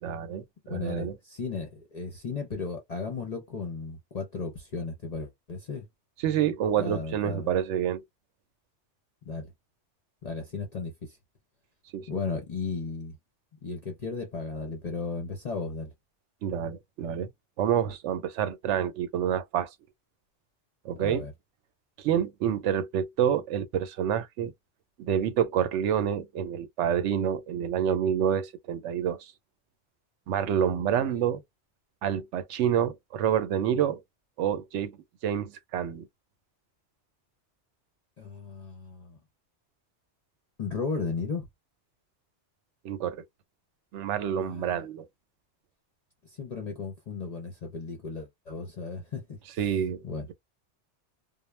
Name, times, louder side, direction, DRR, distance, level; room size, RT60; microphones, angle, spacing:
voice 1, 0.0-1.2 6.2-8.0 11.9-12.2 16.4-17.3 17.6-19.7 20.8-21.3 22.0-24.5 25.0-29.3 30.3-31.4 32.0-34.0 34.4-35.0 35.2-36.1 42.8-43.2 43.9-45.1 49.6-50.0, right 9 dB, 85° right, 0.9 m, -28 dB
voice 2, 0.7-5.9 6.8-7.5 9.2-9.5 10.2-11.2 12.1-13.2 13.6-15.9 21.0-21.3 38.2-39.2 40.6-41.5 44.4-44.7 46.2-49.4 50.0-50.3, left 4 dB, 45° left, 0.6 m, -35 dB
2.3 x 2.0 x 3.1 m
omnidirectional pair, 1.2 m